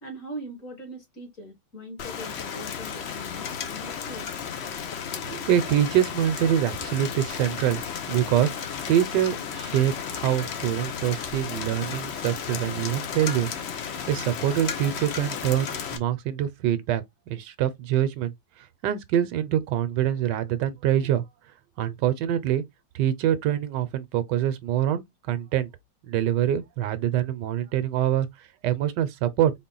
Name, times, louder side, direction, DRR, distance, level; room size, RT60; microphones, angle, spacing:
voice 1, 0.0-4.3, right 1 dB, 50° left, 1.6 m, -41 dB
Rain, 2.0-16.0, left 7 dB, 90° left, 0.5 m, -34 dB
voice 2, 5.2-7.8 8.1-13.5 14.1-21.2 21.8-22.6 22.9-25.7 26.0-29.5, right 11 dB, 80° right, 1.2 m, -25 dB
4.1 x 2.1 x 3.8 m
omnidirectional pair, 1.9 m